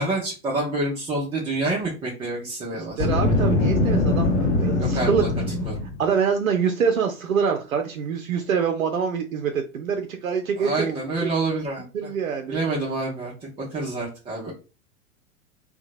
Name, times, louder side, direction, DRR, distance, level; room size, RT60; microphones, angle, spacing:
voice 1, 0.0-3.2 4.8-5.3 5.6-5.8 10.6-11.9 12.5-14.5, right 2 dB, 15° right, -6 dB, 0.5 m, -27 dB
voice 2, 2.7-5.2 6.0-10.9 11.9-12.6, right 6 dB, 75° right, 5 dB, 0.5 m, -25 dB
Boom, 2.9-6.0, left 2 dB, 50° left, 0.8 m, -22 dB
2.7 x 2.2 x 2.5 m, 0.32 s
figure-of-eight pair, 95°, 41 cm